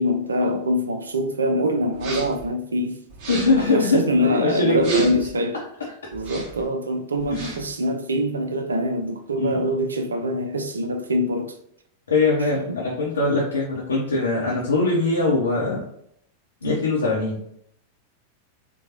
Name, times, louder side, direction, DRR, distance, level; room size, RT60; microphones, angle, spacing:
voice 1, 0.0-3.0 3.5-5.6 6.1-11.5 12.7-12.8, equal, 75° right, 0.4 m, -24 dB
sound 1, 1.9-2.5 3.1-3.7 4.8-5.3 6.1-6.7 7.2-7.7, right 3 dB, 45° right, 0.8 m, -35 dB
voice 2, 3.3-5.2 5.8-5.9 7.3-7.5 9.4-9.6 12.1-15.8 16.6-17.4, left 2 dB, 70° left, 0.7 m, -22 dB
3.8 x 2.2 x 3.0 m
figure-of-eight pair, 90°, 0 cm